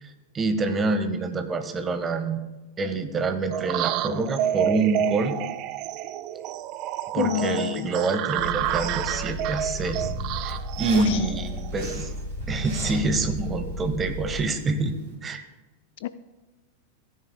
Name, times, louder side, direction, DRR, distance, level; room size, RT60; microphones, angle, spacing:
voice 1, 0.0-2.4 2.8-5.4 7.1-10.1 10.4-12.1 12.5-15.0 15.2-15.5, right 3 dB, 20° right, 8 dB, 1.0 m, -26 dB
sound 1, 3.5-11.9, right 12 dB, 40° right, 0.4 m, -29 dB
voice 2, 7.2-7.9 10.9-11.2 16.0-16.1, left 13 dB, 55° left, 14 dB, 0.3 m, -28 dB
sound 2, 8.4-14.4, equal, 35° left, 4.1 m, -34 dB
Zipper (clothing), 8.4-15.1, right 3 dB, 55° right, 3.5 m, -45 dB
16.0 x 9.7 x 2.3 m, 1.1 s
figure-of-eight pair, 90°, 0 cm